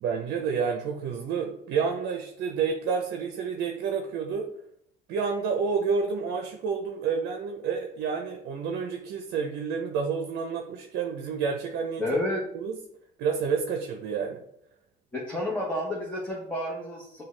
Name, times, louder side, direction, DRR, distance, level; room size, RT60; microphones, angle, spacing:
voice 1, 0.0-4.5 5.1-12.0 12.5-12.8 13.2-14.4, right 6 dB, 80° right, 3 dB, 0.6 m, -29 dB
voice 2, 12.0-12.4 15.1-17.2, left 1 dB, 10° left, -5 dB, 1.1 m, -30 dB
6.0 x 2.3 x 3.2 m, 0.72 s
cardioid pair, 110°, 17 cm